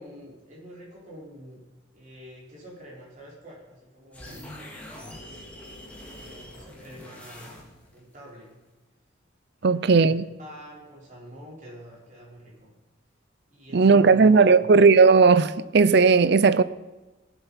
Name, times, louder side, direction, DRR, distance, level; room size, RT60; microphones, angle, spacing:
voice 1, 0.0-1.6 1.9-4.6 6.1-8.5 9.6-12.7 13.5-14.7, equal, 40° right, 4.9 m, -46 dB
sound 1, 4.1-8.0, left 1 dB, 5° left, 2.6 m, -44 dB
voice 2, 9.6-10.2 13.7-16.6, right 4 dB, 55° right, 0.5 m, -16 dB
18.5 x 8.2 x 5.8 m
head